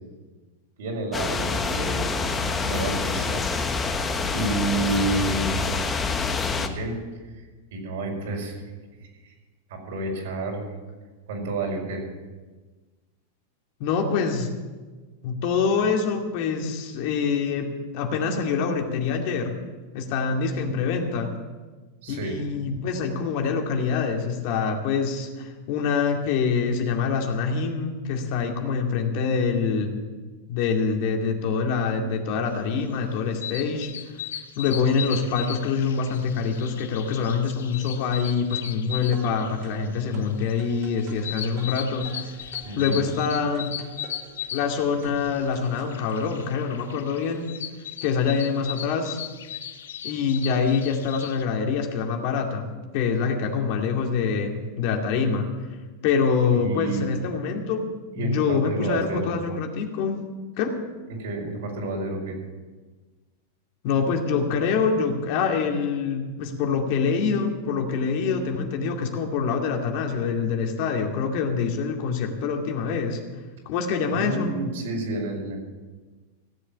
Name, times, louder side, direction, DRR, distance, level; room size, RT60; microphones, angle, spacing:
voice 1, 0.8-2.1 2.6-3.4 4.3-5.6 6.5-7.0 7.3-7.4 7.7-8.6 8.9-9.3 9.7-10.6 11.3-12.0 22.0-22.4 42.6-43.0 56.5-57.1 58.1-59.3 61.1-62.4 74.1-75.6, right 2 dB, 70° right, 0 dB, 5.2 m, -30 dB
sound 1, 1.1-6.7, left 4 dB, 15° left, 1.3 m, -26 dB
voice 2, 13.8-14.5 15.2-19.6 19.9-21.3 22.1-30.0 30.5-33.9 34.6-42.3 42.8-43.7 44.5-47.5 48.0-49.2 50.0-55.5 56.0-57.9 58.2-60.3 60.6-60.8 63.8-73.2 73.7-74.6, left 5 dB, 55° left, 3 dB, 2.3 m, -25 dB
sound 2, 32.8-51.4, left 9 dB, 90° left, 1.0 m, -38 dB
sound 3, 38.9-45.9, right 1 dB, 45° right, 3.1 m, -44 dB
16.5 x 7.8 x 8.7 m, 1.3 s
supercardioid pair, 135°, 0 cm